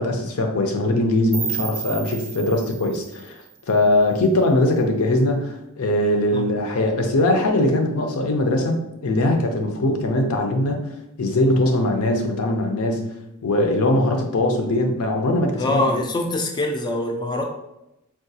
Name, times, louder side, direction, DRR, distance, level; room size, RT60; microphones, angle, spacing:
voice 1, 0.0-3.4 3.7-8.8 9.0-10.8 11.2-13.1 13.4-15.9, left 1 dB, 75° left, 4 dB, 0.5 m, -21 dB
sound 1, 1.3-4.3, right 7 dB, 55° right, 0.5 m, -33 dB
voice 2, 15.6-17.4, left 2 dB, 20° left, 2 dB, 0.3 m, -23 dB
3.6 x 2.3 x 2.7 m, 0.87 s
head